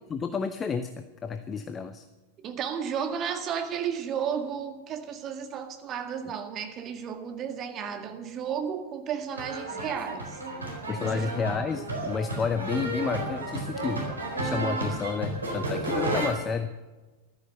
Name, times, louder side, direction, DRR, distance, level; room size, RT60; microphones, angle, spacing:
voice 1, 0.1-0.9 1.2-2.0 10.9-14.1 14.4-16.7, left 5 dB, 20° left, 10 dB, 0.8 m, -30 dB
voice 2, 2.4-10.4 11.0-11.3, right 7 dB, 30° right, 6 dB, 1.8 m, -33 dB
sound 1, 9.4-16.3, right 2 dB, 75° right, 4.1 m, -32 dB
14.5 x 13.0 x 6.7 m, 1.2 s
figure-of-eight pair, 90°, 0 cm